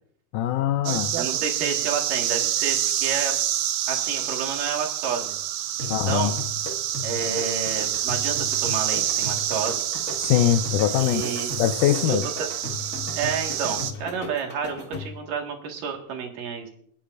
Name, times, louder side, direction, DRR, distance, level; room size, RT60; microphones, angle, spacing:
voice 1, 0.3-1.1 5.9-6.3 10.2-11.2 11.6-12.3, left 12 dB, 80° left, 9 dB, 1.9 m, -22 dB
sound 1, 0.9-13.9, right 11 dB, 90° right, 2.5 m, -27 dB
voice 2, 1.2-3.3 3.9-5.4 5.8-6.4 7.0-9.8 11.0-11.6 12.1-12.5 13.2-16.7, right 6 dB, 70° right, 2 dB, 3.3 m, -30 dB
sound 2, 5.8-15.3, left 2 dB, 40° left, 1.3 m, -36 dB
29.0 x 9.9 x 2.5 m, 0.66 s
omnidirectional pair, 4.0 m